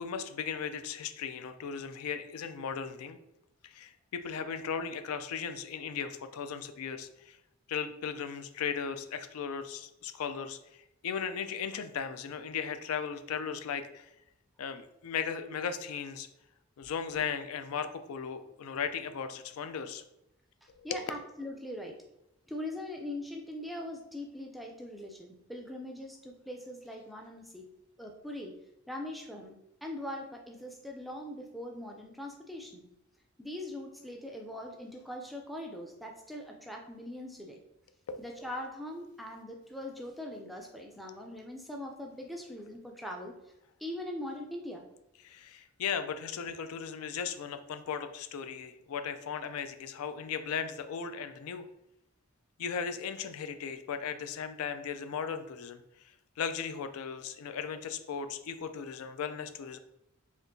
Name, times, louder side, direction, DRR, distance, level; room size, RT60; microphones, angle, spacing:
voice 1, 0.0-3.2 3.6-7.4 7.7-14.1 14.6-16.3 16.8-20.0 20.7-21.0 38.1-38.2 45.2-51.6 52.6-55.8 56.4-59.8, left 6 dB, 80° left, 10 dB, 0.4 m, -37 dB
voice 2, 20.8-22.0 22.5-27.7 28.0-28.6 28.9-29.5 29.8-32.8 33.4-37.6 38.2-43.3 43.8-44.8, left 1 dB, ahead, 1 dB, 0.3 m, -41 dB
4.3 x 2.9 x 2.6 m, 0.85 s
head